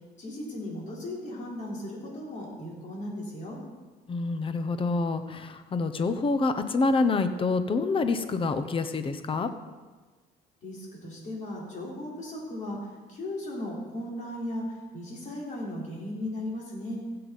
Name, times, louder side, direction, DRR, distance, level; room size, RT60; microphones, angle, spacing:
voice 1, 0.2-3.6 10.6-12.8 13.1-14.6 14.9-17.0, left 1 dB, 45° left, -3 dB, 3.9 m, -36 dB
voice 2, 4.1-9.5, left 3 dB, 30° left, 10 dB, 0.9 m, -27 dB
16.0 x 7.8 x 4.1 m, 1.3 s
cardioid pair, 110°, 17 cm